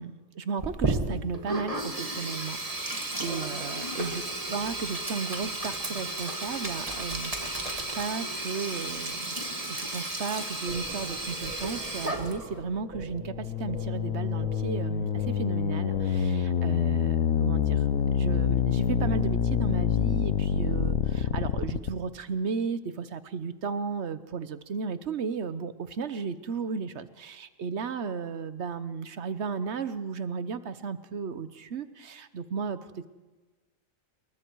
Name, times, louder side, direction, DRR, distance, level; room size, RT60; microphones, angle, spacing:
voice 1, 0.0-9.3 9.7-17.8 18.1-32.8, right 5 dB, 55° right, 12 dB, 1.2 m, -34 dB
Sink (filling or washing), 0.6-12.6, right 2 dB, 25° right, 2.1 m, -33 dB
sound 1, 10.7-16.7, right 2 dB, 10° right, 3.8 m, -44 dB
sound 2, 13.1-21.9, left 8 dB, 90° left, 1.4 m, -26 dB
28.0 x 21.5 x 4.7 m, 1.3 s
omnidirectional pair, 1.4 m